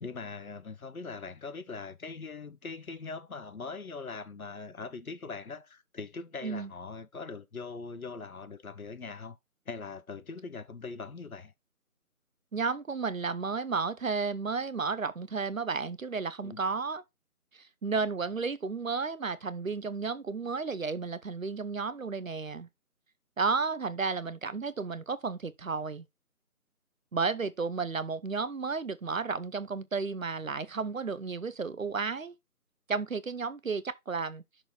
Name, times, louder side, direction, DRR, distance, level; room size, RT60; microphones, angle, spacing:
voice 1, 0.0-9.4 9.7-11.5 16.4-16.6, left 4 dB, 65° left, 1.1 m, -41 dB
voice 2, 12.5-17.0 17.5-22.7 23.4-26.0 27.1-32.3 32.9-34.4, right 4 dB, 60° right, 0.8 m, -32 dB
6.3 x 4.9 x 4.3 m
figure-of-eight pair, 175°, 45 cm